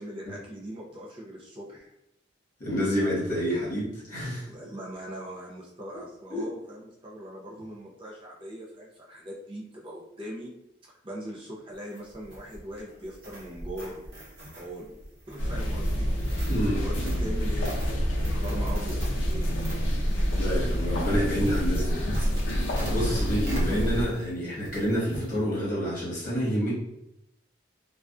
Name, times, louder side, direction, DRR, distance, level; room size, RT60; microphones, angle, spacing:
voice 1, 0.0-1.9 4.4-10.5 10.9-14.2 14.6-15.0 15.3-17.8 18.1-19.8, equal, 25° right, -4 dB, 0.4 m, -41 dB
voice 2, 2.6-4.5 6.3-6.5 16.5-17.2 19.9-20.0 20.4-22.3 22.8-26.7, equal, 45° left, -7 dB, 1.0 m, -28 dB
sound 1, 11.7-24.3 24.6-25.3, equal, 55° right, 0.8 m, -42 dB
sound 2, 15.4-24.1, equal, 80° left, 0.4 m, -27 dB
2.4 x 2.2 x 2.3 m, 0.82 s
head